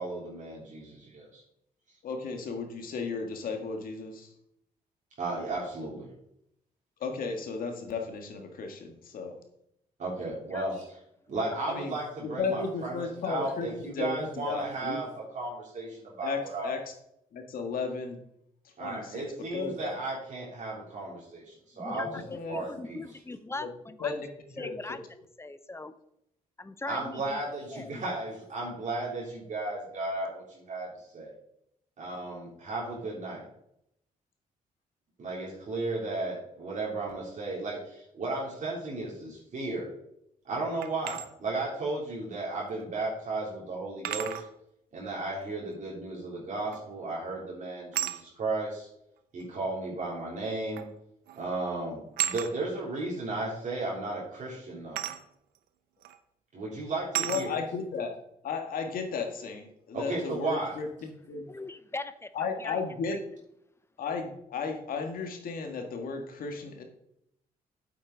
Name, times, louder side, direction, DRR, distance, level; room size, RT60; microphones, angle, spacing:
voice 1, 0.0-1.4 5.2-6.1 10.0-10.9 11.3-16.7 18.8-22.1 22.5-23.0 26.9-30.9 31.1-31.3 32.0-33.4 35.2-39.9 40.4-44.4 44.9-48.9 49.3-50.8 51.3-55.0 56.5-57.6 59.9-60.7, right 2 dB, 55° right, -5 dB, 3.3 m, -34 dB
voice 2, 2.0-4.3 7.0-9.4 11.7-12.0 12.2-15.0 16.2-16.8 17.3-18.2 18.8-19.2 19.5-19.9 21.8-22.6 23.6-23.7 24.0-24.3 24.5-25.0 57.2-58.1 58.4-61.4 62.3-63.2 64.0-66.8, left 5 dB, 70° left, 4 dB, 1.8 m, -34 dB
voice 3, 21.8-24.2 24.6-25.0 25.4-25.9 26.6-27.4 27.7-28.0 61.5-62.3 62.6-62.8, left 3 dB, 15° left, 13 dB, 0.6 m, -40 dB
sound 1, 40.8-41.3 42.8-42.9 44.0-44.5 46.7-47.0 47.9-48.2 49.4-49.5 50.8-51.0 51.3-51.5 52.2-52.5 55.0-55.2 56.0-56.2 57.1-57.5, right 12 dB, 85° right, 0.7 m, -33 dB
8.7 x 7.5 x 4.0 m, 0.76 s
cardioid pair, 85°, 15 cm